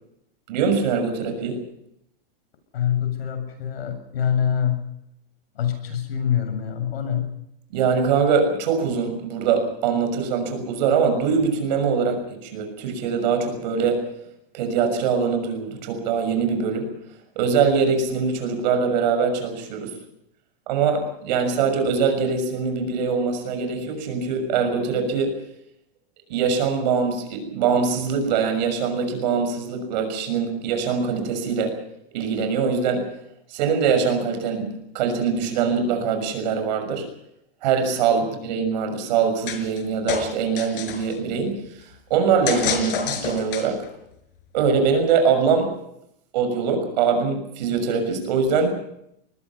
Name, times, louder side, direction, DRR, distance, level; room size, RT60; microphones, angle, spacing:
voice 1, 0.5-1.6 7.7-14.1 14.5-16.9 17.4-20.0 20.7-25.4 26.3-31.8 32.1-33.1 33.5-37.1 37.6-41.7 42.1-43.8 44.5-45.8 46.3-48.8, right 5 dB, 45° right, 6 dB, 6.3 m, -23 dB
voice 2, 2.7-4.8 5.5-7.3, left 8 dB, 85° left, 8 dB, 7.5 m, -25 dB
sound 1, 39.5-39.8 40.1-41.1 42.5-43.9, left 7 dB, 65° left, 5.0 m, -27 dB
25.0 x 21.0 x 5.8 m, 0.77 s
supercardioid pair, 180°, 29 cm